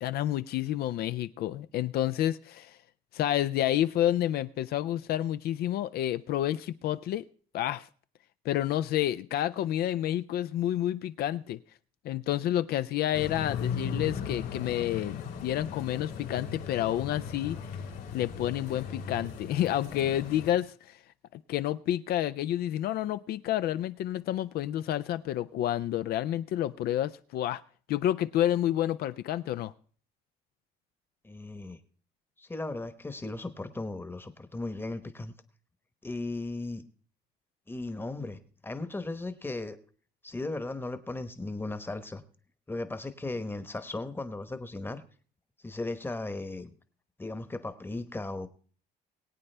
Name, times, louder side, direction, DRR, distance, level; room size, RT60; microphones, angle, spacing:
voice 1, 0.0-2.8 3.1-7.3 7.5-7.9 8.4-11.6 12.0-17.6 18.1-21.0 21.3-27.6 27.9-29.7, left 12 dB, 65° left, 13 dB, 0.4 m, -29 dB
sound 1, 13.1-20.5, left 6 dB, 85° left, 3.1 m, -37 dB
voice 2, 31.2-31.8 32.4-35.3 36.0-36.8 37.7-39.8 40.2-42.2 42.7-45.0 45.6-46.7 47.2-48.5, left 2 dB, 15° left, 11 dB, 1.0 m, -36 dB
22.0 x 8.6 x 3.3 m, 0.44 s
cardioid pair, 110°, 17 cm